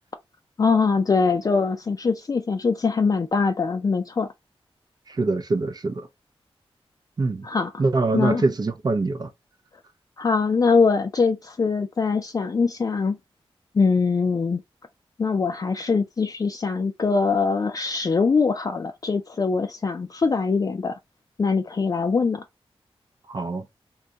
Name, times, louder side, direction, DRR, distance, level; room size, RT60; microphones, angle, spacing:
voice 1, 0.6-4.3 7.4-7.8 8.1-8.4 10.2-13.2 13.7-14.6 15.2-21.0 21.4-22.4, left 4 dB, 35° left, 0.4 m, -22 dB
voice 2, 5.1-6.1 7.2-7.5 7.8-9.3 23.3-23.7, right 3 dB, 40° right, 0.5 m, -24 dB
2.6 x 2.3 x 3.8 m
wide cardioid pair, 80°, 10 cm